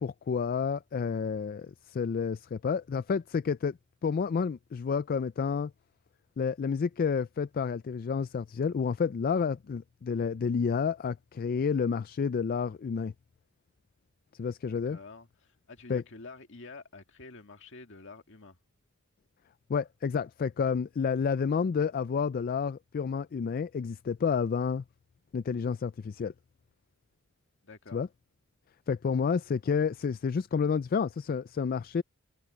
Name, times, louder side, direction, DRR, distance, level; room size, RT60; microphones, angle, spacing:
voice 1, 0.0-5.7 6.4-13.1 14.4-15.0 15.9-16.0 19.7-24.8 25.3-26.3 27.9-28.1 28.9-32.0, left 6 dB, 45° left, 0.3 m, -30 dB
voice 2, 14.7-18.6 27.6-28.0, left 3 dB, 60° left, 2.0 m, -48 dB
head